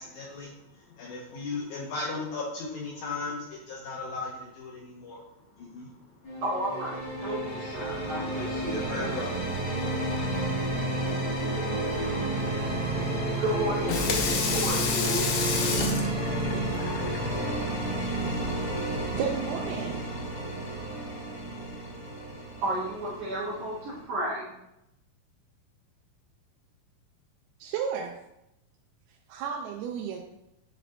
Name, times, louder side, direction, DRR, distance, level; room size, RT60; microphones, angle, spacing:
voice 1, 0.0-6.3 8.3-10.1, left 3 dB, 75° left, -3 dB, 1.9 m, -37 dB
sound 1, 6.2-24.0, right 1 dB, 35° left, 1.7 m, -31 dB
voice 2, 6.4-9.2 13.4-15.3 22.6-24.5, right 1 dB, 60° right, -8 dB, 2.5 m, -33 dB
Water tap faucet / Sink (filling or washing), 13.7-19.2, left 5 dB, 90° left, 2.8 m, -31 dB
voice 3, 19.1-20.0 27.6-28.1 29.3-30.2, right 7 dB, 90° right, 1 dB, 2.5 m, -32 dB
8.7 x 5.0 x 2.2 m, 0.85 s
omnidirectional pair, 4.4 m